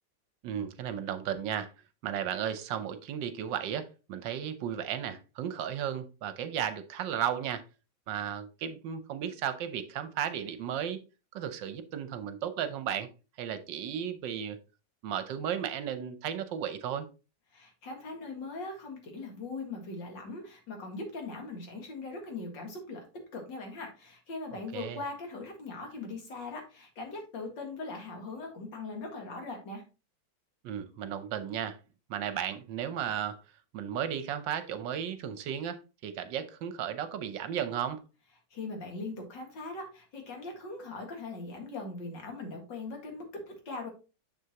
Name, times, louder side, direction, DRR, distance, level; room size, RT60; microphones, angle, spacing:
voice 1, 0.4-1.7 2.0-7.6 8.1-11.0 11.3-13.1 13.4-14.6 15.0-17.1 24.5-25.0 30.6-31.8 32.1-33.4 33.7-38.0, right 9 dB, 80° right, 1.4 m, -34 dB
voice 2, 17.5-23.1 23.3-29.8 38.5-43.9, left 3 dB, 70° left, 2.4 m, -40 dB
6.7 x 6.6 x 2.8 m
omnidirectional pair, 2.0 m